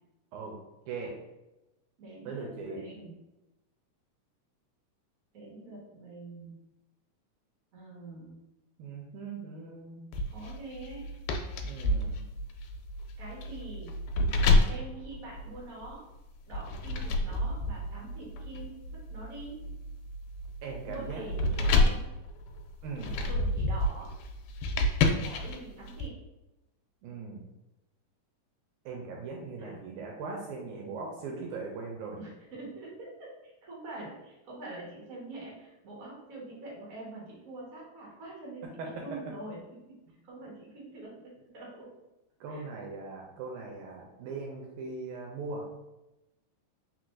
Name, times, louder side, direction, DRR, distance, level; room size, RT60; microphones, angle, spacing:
voice 1, 0.9-1.2 2.3-2.8 8.8-10.0 11.6-12.4 20.6-21.9 22.8-23.1 27.0-27.5 28.9-32.2 38.8-38.9 42.4-45.7, right 4 dB, 80° right, 0 dB, 1.9 m, -40 dB
voice 2, 2.0-3.1 5.3-6.6 7.7-8.4 10.3-11.1 13.2-14.0 14.6-16.0 16.4-18.8 19.1-19.6 20.8-22.1 23.0-24.1 25.2-26.2 29.5-29.8 32.1-40.0 40.2-41.9 42.5-42.9, right 2 dB, 50° right, -5 dB, 1.0 m, -45 dB
sound 1, 10.1-15.9 16.5-26.1, left 2 dB, 90° left, 2.2 m, -29 dB
4.5 x 4.0 x 2.5 m, 0.98 s
omnidirectional pair, 3.8 m